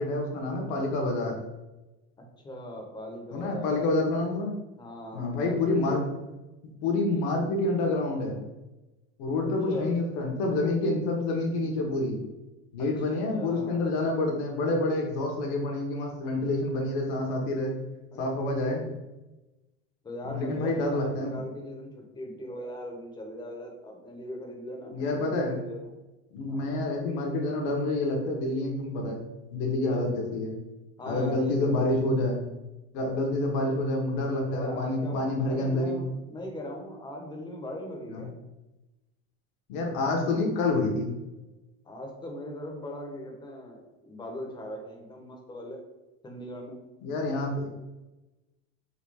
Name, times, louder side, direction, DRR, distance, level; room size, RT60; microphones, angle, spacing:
voice 1, 0.0-1.4 3.3-4.5 5.1-6.0 6.8-8.4 9.2-12.2 12.7-17.7 18.2-18.9 20.2-21.4 24.9-25.6 26.3-29.2 29.5-30.6 31.1-32.4 32.9-36.0 38.1-38.2 39.7-41.1 47.0-47.7, left 2 dB, 65° left, 0 dB, 1.4 m, -28 dB
voice 2, 2.2-3.9 4.8-6.0 9.4-9.9 13.0-13.8 18.1-18.9 20.0-25.9 26.5-26.9 31.0-32.0 34.5-38.3 41.8-45.8 46.2-46.8, left 1 dB, 15° left, 1 dB, 0.9 m, -40 dB
4.1 x 2.5 x 4.8 m, 1.0 s
supercardioid pair, 135°, 30 cm